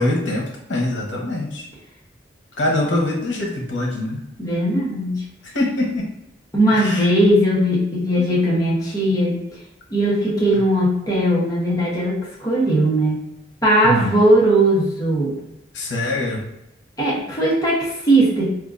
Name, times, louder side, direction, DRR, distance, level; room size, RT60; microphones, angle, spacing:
voice 1, 0.0-1.7 2.6-4.3 5.4-6.1 6.7-7.1 8.2-8.4 13.8-14.1 15.7-16.4, left 1 dB, 85° left, -1 dB, 0.8 m, -23 dB
voice 2, 4.4-5.2 6.5-9.4 9.9-13.2 13.6-15.4 17.0-18.5, right 1 dB, 20° left, -5 dB, 0.9 m, -18 dB
4.4 x 2.4 x 2.5 m, 0.84 s
head